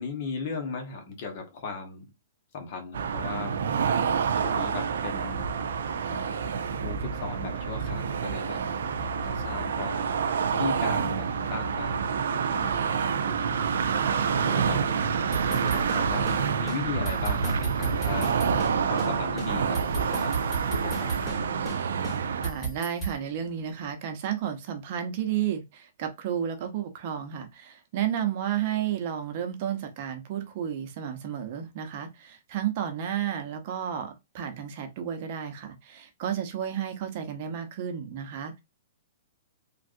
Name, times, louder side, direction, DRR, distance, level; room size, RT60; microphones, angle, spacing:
voice 1, 0.0-2.1 2.5-3.6 4.3-5.5 6.1-8.6 9.0-10.2 10.5-13.7 14.0-16.3 16.6-18.3 18.9-20.4 20.7-21.3, left 4 dB, 50° left, 1.2 m, -37 dB
sound 1, 2.9-22.5, right 6 dB, 80° right, 0.4 m, -28 dB
sound 2, 15.3-16.4 16.7-16.8 17.0-18.7 19.0-19.1 19.4-21.4 21.7-21.8 22.0-23.1, right 4 dB, 15° left, 1.7 m, -34 dB
voice 2, 22.4-38.6, right 9 dB, 50° right, 0.8 m, -32 dB
3.2 x 2.5 x 2.6 m
hypercardioid pair, 140°, 0 cm